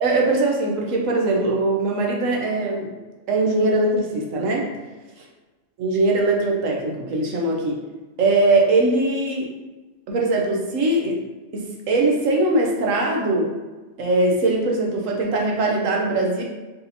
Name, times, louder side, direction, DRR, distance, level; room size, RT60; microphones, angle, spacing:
voice 1, 0.0-2.9 3.3-4.7 5.2-5.3 5.8-7.8 8.2-9.5 10.1-11.2 11.5-13.5 14.0-16.4, right 2 dB, 90° right, 0 dB, 1.2 m, -21 dB
4.1 x 4.1 x 2.7 m, 1.2 s
omnidirectional pair, 1.3 m